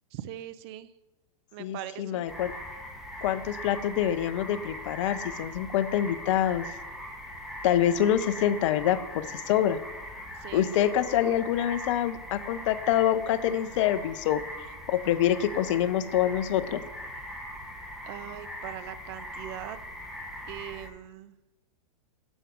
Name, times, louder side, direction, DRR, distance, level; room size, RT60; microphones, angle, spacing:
voice 1, 0.1-0.9 1.5-2.3 10.4-10.7 18.0-19.8 20.5-21.3, right 12 dB, 40° right, 14 dB, 0.6 m, -41 dB
voice 2, 1.6-2.5 3.2-6.7 7.6-9.8 10.5-14.4 14.9-16.8, left 11 dB, 50° left, 14 dB, 0.6 m, -26 dB
sound 1, 2.3-20.9, equal, ahead, 1.4 m, -41 dB
9.8 x 7.2 x 3.4 m, 1.0 s
hypercardioid pair, 110°, 20 cm